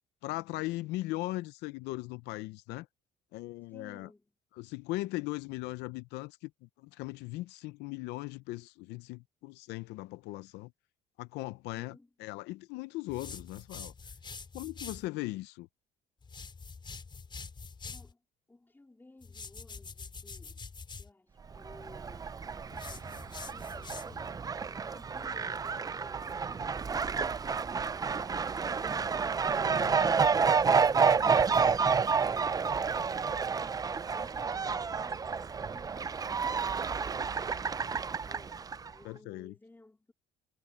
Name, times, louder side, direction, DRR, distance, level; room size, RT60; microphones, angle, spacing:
voice 1, 0.2-2.9 3.3-4.1 4.6-10.7 11.2-13.9 14.5-15.7 29.7-30.1 39.0-39.5, left 19 dB, 90° left, 0.6 m, -39 dB
voice 2, 3.7-4.3 11.7-12.1 17.9-18.2 18.5-20.7 21.0-24.4 24.7-28.5 28.8-33.9 34.1-38.0 38.3-40.1, left 2 dB, 10° left, 3.6 m, -57 dB
sound 1, 13.1-15.1 16.2-18.1 19.2-21.1 22.7-24.3, left 4 dB, 30° left, 4.4 m, -45 dB
Fowl, 21.6-38.9, right 5 dB, 20° right, 0.4 m, -30 dB
cardioid pair, 110°, 17 cm